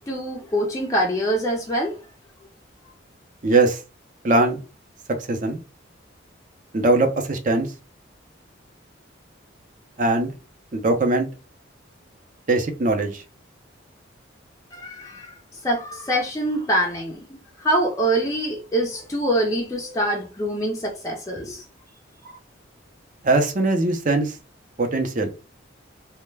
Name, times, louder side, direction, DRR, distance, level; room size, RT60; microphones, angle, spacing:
voice 1, 0.1-1.9 14.7-15.3 15.6-17.2 17.6-21.6 22.2-22.4, right 1 dB, 15° left, 0.4 m, -24 dB
voice 2, 3.4-3.8 4.2-4.6 5.2-5.6 6.7-7.7 10.0-10.3 10.7-11.3 12.5-13.2 23.2-24.4 24.8-25.3, right 2 dB, 40° right, 0.5 m, -21 dB
2.2 x 2.1 x 3.2 m
head